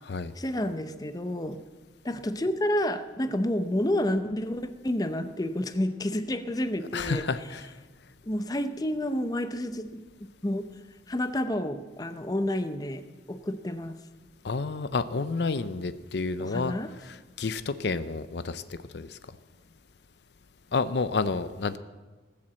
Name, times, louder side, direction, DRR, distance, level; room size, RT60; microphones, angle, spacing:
voice 1, 0.3-1.6 2.0-7.3 8.2-10.0 10.4-10.7 11.1-14.0 16.4-16.9, left 1 dB, 20° left, 10 dB, 0.6 m, -30 dB
voice 2, 6.9-7.7 14.4-16.7 17.0-19.2 20.7-21.8, left 4 dB, 65° left, 13 dB, 0.6 m, -30 dB
18.5 x 7.5 x 7.6 m, 1.3 s
head